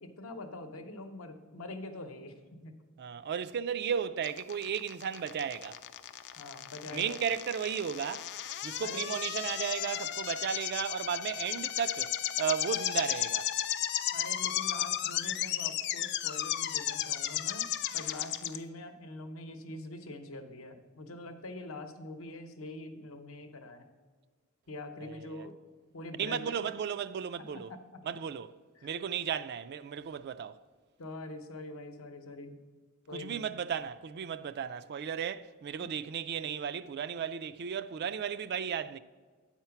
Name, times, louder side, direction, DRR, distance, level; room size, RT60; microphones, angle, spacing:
voice 1, 0.0-2.8 6.4-7.2 8.8-9.1 14.1-23.9 24.7-25.6 25.9-26.7 27.5-28.0 28.7-28.9 31.0-32.6 33.1-33.4, left 2 dB, 75° left, 0.9 m, -44 dB
voice 2, 3.0-5.8 6.9-8.3 8.6-13.5 25.0-25.5 26.2-27.7 28.1-28.5 28.8-30.6 33.1-39.0, right 7 dB, 50° right, 0.3 m, -35 dB
sound 1, 4.2-18.6, left 12 dB, 50° left, 0.4 m, -34 dB
9.5 x 4.4 x 5.8 m
head